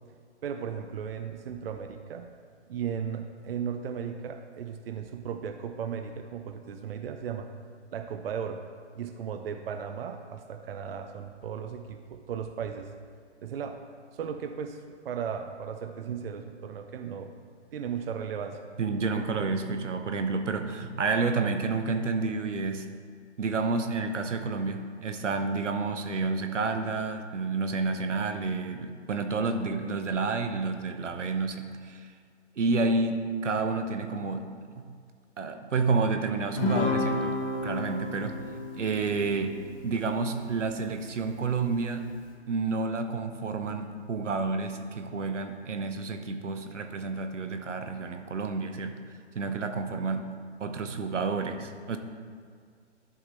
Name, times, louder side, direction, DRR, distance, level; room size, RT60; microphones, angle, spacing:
voice 1, 0.4-2.3 2.7-7.5 7.9-8.6 9.0-12.9 13.4-13.8 14.1-14.8 15.0-17.3 17.7-18.6, right 7 dB, 55° right, 7 dB, 0.6 m, -36 dB
voice 2, 18.8-22.9 23.4-32.1 32.6-34.8 35.4-38.4 38.8-39.6 39.8-42.1 42.5-49.0 49.3-50.3 50.6-52.0, right 4 dB, 85° right, 7 dB, 0.9 m, -30 dB
Guitar, 36.6-41.2, left 2 dB, 30° left, 0.9 m, -32 dB
11.0 x 5.7 x 3.2 m, 2.1 s
hypercardioid pair, 145°, 35 cm